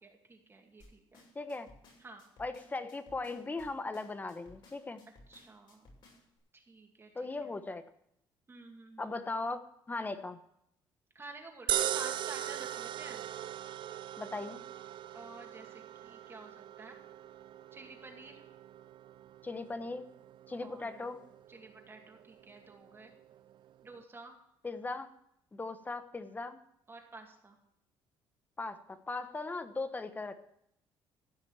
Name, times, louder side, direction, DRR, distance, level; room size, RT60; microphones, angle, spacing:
voice 1, 0.0-1.3 2.0-2.3 5.3-5.9 6.5-7.5 8.5-9.2 11.1-13.2 15.1-17.0 17.7-18.4 20.5-21.2 21.5-23.1 23.8-24.4 26.9-27.6, right 3 dB, 25° right, 2 dB, 2.3 m, -51 dB
sound 1, 0.8-6.4, left 2 dB, 55° left, 7.0 m, -59 dB
voice 2, 1.3-1.7 2.4-5.0 7.1-7.8 9.0-9.6 9.9-10.4 14.2-14.6 19.4-20.1 20.5-21.2 24.6-25.1 25.5-26.6 28.6-30.4, left 3 dB, 15° left, 10 dB, 1.1 m, -38 dB
sound 2, 11.7-24.0, right 12 dB, 55° right, 0.4 m, -40 dB
15.5 x 6.0 x 9.1 m, 0.76 s
cardioid pair, 110°, 10 cm